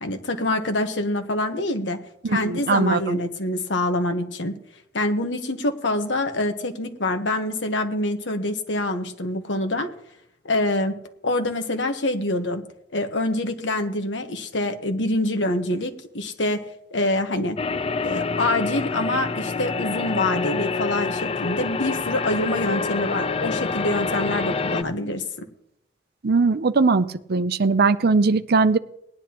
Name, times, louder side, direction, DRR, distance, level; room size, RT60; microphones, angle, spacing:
voice 1, 0.0-2.0 2.2-4.5 4.9-9.9 10.4-10.9 11.2-12.6 12.9-16.6 16.9-17.6 18.0-25.2, left 1 dB, 70° left, 6 dB, 1.3 m, -25 dB
voice 2, 2.2-3.2 26.2-28.8, right 4 dB, 60° right, 13 dB, 0.6 m, -20 dB
sound 1, 17.6-24.8, left 4 dB, 30° left, 0.5 m, -27 dB
19.0 x 10.5 x 3.0 m, 0.74 s
head